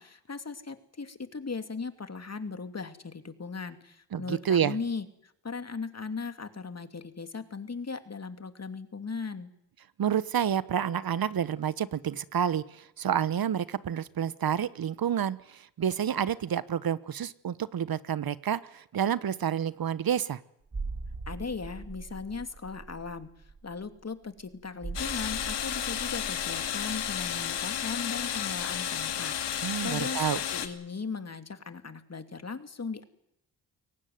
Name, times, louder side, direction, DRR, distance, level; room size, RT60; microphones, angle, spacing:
voice 1, 0.0-9.5 21.3-23.3 23.6-33.0, left 4 dB, 35° left, 9 dB, 2.8 m, -38 dB
voice 2, 4.1-4.8 10.0-20.4 29.6-30.4, right 9 dB, 55° right, 17 dB, 1.2 m, -29 dB
sound 1, 20.7-29.1 29.4-29.5, right 4 dB, 35° right, 3.5 m, -42 dB
sound 2, 24.9-30.7, left 9 dB, 70° left, 2.5 m, -32 dB
23.0 x 18.0 x 9.5 m, 0.79 s
supercardioid pair, 50°, 43 cm